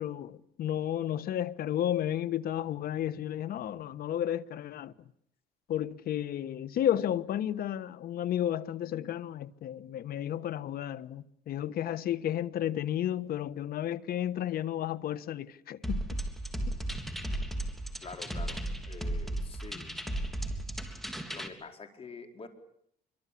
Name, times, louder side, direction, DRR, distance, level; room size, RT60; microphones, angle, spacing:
voice 1, 0.0-4.9 5.7-16.0, left 11 dB, 65° left, 1.4 m, -32 dB
sound 1, 15.8-21.5, right 1 dB, ahead, 3.4 m, -35 dB
voice 2, 18.0-19.9 21.3-22.5, left 4 dB, 35° left, 4.9 m, -46 dB
26.5 x 24.5 x 8.7 m
cardioid pair, 110°, 17 cm